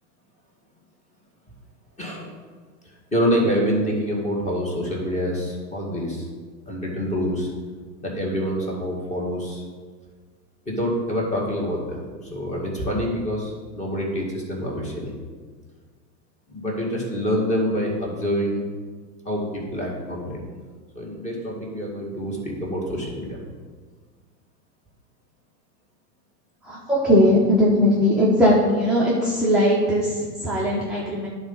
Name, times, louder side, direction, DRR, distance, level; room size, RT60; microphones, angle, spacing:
voice 1, 2.0-2.3 3.1-6.3 6.7-7.5 8.0-9.6 10.7-15.1 16.5-18.7 19.3-20.4 21.0-23.4, equal, 15° left, -2 dB, 2.1 m, -26 dB
voice 2, 26.7-31.3, equal, ahead, -6 dB, 1.0 m, -19 dB
10.0 x 4.1 x 5.6 m, 1.5 s
hypercardioid pair, 120°, 49 cm